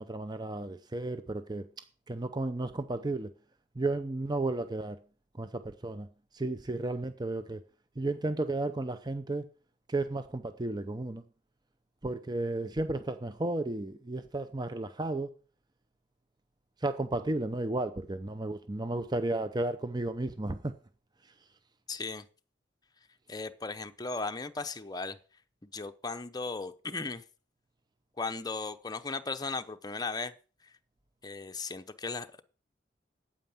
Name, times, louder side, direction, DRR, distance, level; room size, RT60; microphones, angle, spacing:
voice 1, 0.0-1.7 2.1-3.3 3.8-5.0 5.4-6.1 6.3-7.6 8.0-9.5 9.9-11.2 12.0-15.3 16.8-20.7, right 2 dB, 25° right, 0.7 m, -33 dB
voice 2, 21.9-22.2 23.3-25.2 25.6-27.2 28.2-30.3 30.6-30.7 31.2-32.4, left 3 dB, 20° left, 0.8 m, -36 dB
9.1 x 8.7 x 7.2 m
head